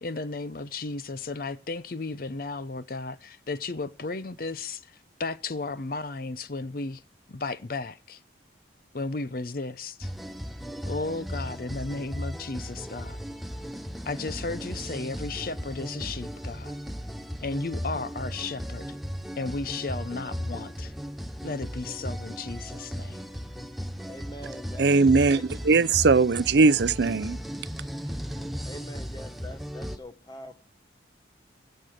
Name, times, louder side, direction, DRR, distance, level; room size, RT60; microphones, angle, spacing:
voice 1, 0.0-7.0 7.3-8.2 8.9-10.1 10.8-13.2 14.0-16.8 17.4-18.9 19.4-20.9 21.4-23.2, left 3 dB, 50° left, 0.6 m, -34 dB
sound 1, 10.0-30.0, equal, ahead, 0.6 m, -36 dB
voice 2, 24.1-24.9 25.4-25.5 28.7-30.6, left 1 dB, 20° left, 1.2 m, -43 dB
voice 3, 24.8-25.4 25.6-27.4, right 4 dB, 65° right, 0.5 m, -20 dB
16.5 x 6.6 x 6.6 m
head